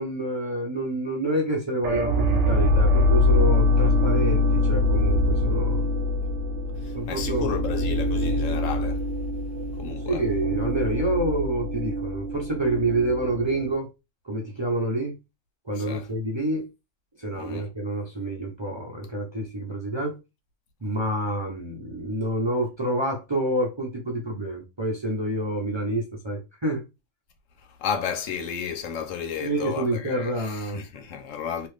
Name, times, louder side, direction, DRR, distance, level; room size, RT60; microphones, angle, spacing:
voice 1, 0.0-5.8 6.9-7.5 10.1-13.9 14.2-15.2 15.7-16.7 17.2-20.2 20.8-26.8 29.4-30.8, right 1 dB, 30° right, 0.5 m, -28 dB
sound 1, 1.8-13.7, left 2 dB, 70° right, 0.9 m, -24 dB
voice 2, 6.8-9.0 9.8-10.2 15.8-16.1 17.4-17.7 27.8-31.7, left 7 dB, 80° left, 1.0 m, -32 dB
3.0 x 2.5 x 3.2 m
omnidirectional pair, 1.3 m